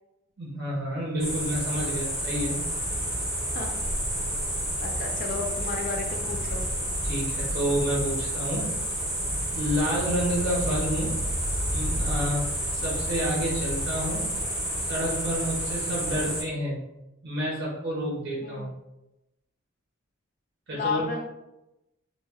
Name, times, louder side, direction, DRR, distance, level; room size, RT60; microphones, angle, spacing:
voice 1, 0.4-2.6 7.0-8.8 9.5-11.2 11.7-12.5 12.7-14.3 14.8-16.8 17.2-18.7 20.7-21.0, equal, 55° right, -5 dB, 0.5 m, -29 dB
sound 1, 1.2-16.4, equal, 5° right, 0.7 m, -30 dB
voice 2, 4.8-6.7 16.0-16.3 18.4-18.7 20.7-21.3, left 4 dB, 40° left, 3 dB, 0.3 m, -33 dB
2.1 x 2.0 x 3.3 m, 0.95 s
head